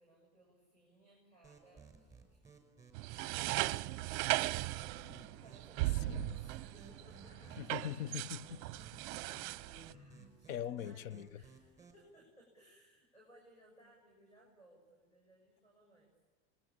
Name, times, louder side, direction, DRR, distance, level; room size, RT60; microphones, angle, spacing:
voice 1, 0.0-2.4 3.0-7.4 9.6-16.1, right 1 dB, 15° left, 6.8 m, -64 dB
sound 1, 1.4-12.1, right 4 dB, 10° right, 4.9 m, -60 dB
sound 2, 2.9-9.9, right 20 dB, 50° right, 0.6 m, -38 dB
sound 3, 4.8-10.3, equal, 50° left, 7.2 m, -61 dB
voice 2, 7.6-8.7 10.5-11.3, left 10 dB, 70° left, 0.9 m, -41 dB
27.0 x 21.0 x 8.7 m
supercardioid pair, 140°, 42 cm